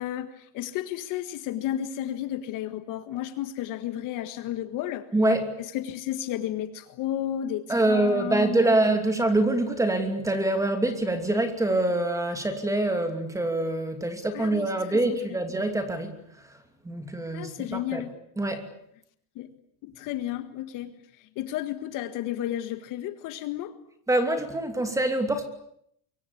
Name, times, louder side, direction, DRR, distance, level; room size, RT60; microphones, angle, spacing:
voice 1, 0.0-5.1 5.6-8.8 14.3-15.2 17.3-18.1 19.4-19.5 19.8-20.9 21.2-23.8, left 12 dB, 40° left, 10 dB, 1.8 m, -33 dB
voice 2, 5.1-5.5 7.7-16.1 16.8-18.0 18.4-18.7 24.1-25.4, right 2 dB, 5° right, 8 dB, 2.7 m, -25 dB
25.5 x 23.5 x 8.7 m, 0.72 s
cardioid pair, 165°, 46 cm